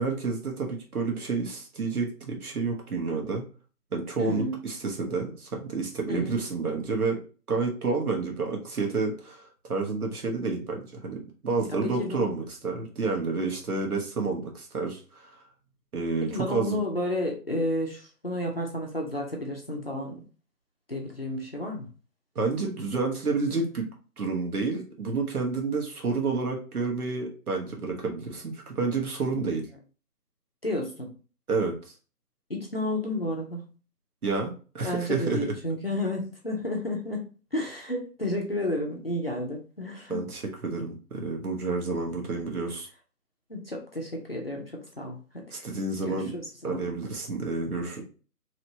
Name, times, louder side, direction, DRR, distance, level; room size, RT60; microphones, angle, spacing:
voice 1, 0.0-3.4 3.9-7.2 7.5-15.4 15.9-16.8 22.3-23.9 24.2-29.6 31.5-31.7 34.2-35.5 40.1-42.9 45.5-46.3 46.6-48.0, right 4 dB, 65° right, 1 dB, 1.2 m, -29 dB
voice 2, 4.2-4.6 6.1-6.4 11.7-12.3 16.2-20.2 20.9-21.9 30.6-31.1 32.5-33.7 34.8-37.2 37.5-40.2 41.1-41.3 43.5-45.6 46.0-46.9, left 1 dB, 40° left, 0 dB, 0.6 m, -31 dB
3.1 x 3.0 x 2.7 m, 0.37 s
figure-of-eight pair, 170°, 48 cm